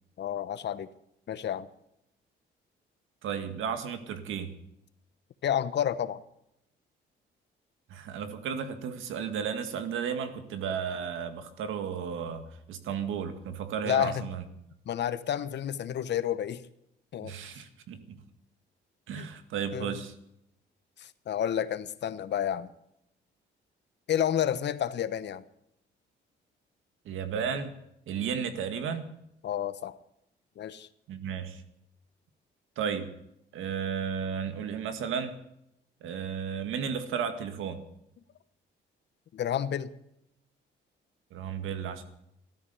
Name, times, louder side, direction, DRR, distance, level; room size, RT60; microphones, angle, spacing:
voice 1, 0.2-0.9 1.3-1.7 5.4-6.2 13.8-14.2 14.9-16.6 17.1-17.3 19.1-19.3 19.7-20.0 21.0-22.7 24.1-25.4 29.4-29.9 30.6-30.9 39.3-39.9, left 10 dB, 60° left, 14 dB, 1.1 m, -30 dB
voice 2, 3.2-4.5 7.9-14.4 17.2-18.2 19.1-20.1 27.1-27.7 28.1-29.1 31.1-31.6 32.8-33.1 33.5-35.4 36.0-37.8 41.3-42.0, right 7 dB, 85° right, 8 dB, 2.0 m, -34 dB
14.5 x 13.0 x 7.0 m, 0.80 s
cardioid pair, 90°, 20 cm